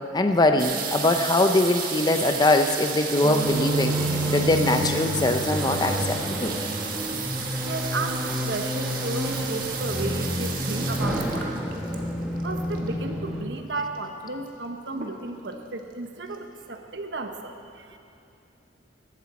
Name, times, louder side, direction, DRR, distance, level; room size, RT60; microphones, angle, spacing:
voice 1, 0.1-6.6, left 2 dB, 25° left, 6 dB, 0.5 m, -22 dB
sound 1, 0.6-13.1 13.9-14.0 14.2-14.6 14.9-15.5 16.1-16.2 16.3-16.4, right 6 dB, 50° right, 1.3 m, -33 dB
sound 2, 3.2-13.4, equal, 5° right, 1.1 m, -29 dB
voice 2, 7.6-11.8 12.3-18.0, right 3 dB, 70° right, 5 dB, 1.0 m, -34 dB
14.5 x 12.0 x 4.3 m, 2.8 s
head